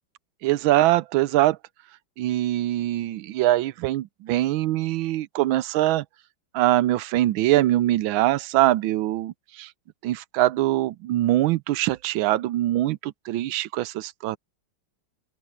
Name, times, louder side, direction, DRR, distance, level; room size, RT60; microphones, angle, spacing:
voice 1, 0.4-1.6 2.2-6.0 6.5-9.7 10.0-14.4, right 15 dB, 80° right, 1.4 m, -23 dB
open air
omnidirectional pair, 2.2 m